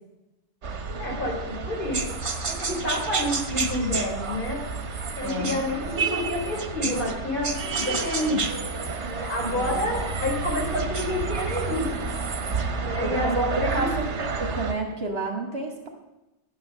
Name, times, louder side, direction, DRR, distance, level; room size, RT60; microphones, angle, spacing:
sound 1, 0.6-14.7, right 4 dB, 80° right, 1.5 m, -31 dB
voice 1, 1.0-2.0 2.5-4.6 5.1-8.4 9.0-11.9 12.7-14.0, left 1 dB, 50° left, -1 dB, 3.8 m, -29 dB
sound 2, 1.9-7.2 7.4-12.7, right 4 dB, 30° right, 0.7 m, -33 dB
voice 2, 5.2-5.6 9.5-9.8 13.0-15.9, right 2 dB, 60° right, 2 dB, 2.2 m, -31 dB
11.5 x 9.1 x 6.4 m, 0.98 s
omnidirectional pair, 1.2 m